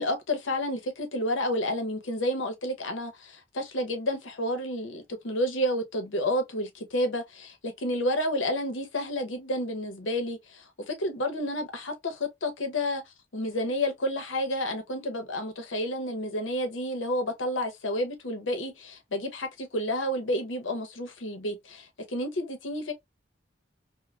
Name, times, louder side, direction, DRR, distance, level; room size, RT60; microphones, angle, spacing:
voice 1, 0.0-13.0 13.3-22.9, left 1 dB, 80° left, 0.8 m, -30 dB
3.1 x 2.1 x 2.3 m
head